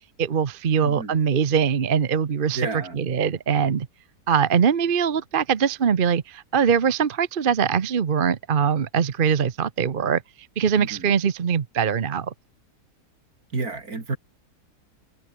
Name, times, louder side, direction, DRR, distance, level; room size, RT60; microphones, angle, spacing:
voice 1, 0.2-3.9 4.3-10.2 10.6-12.3, right 7 dB, 40° right, 0.9 m, -22 dB
voice 2, 0.8-1.1 2.5-3.0 10.8-11.1 13.5-14.2, right 3 dB, 65° right, 4.0 m, -30 dB
omnidirectional pair, 1.7 m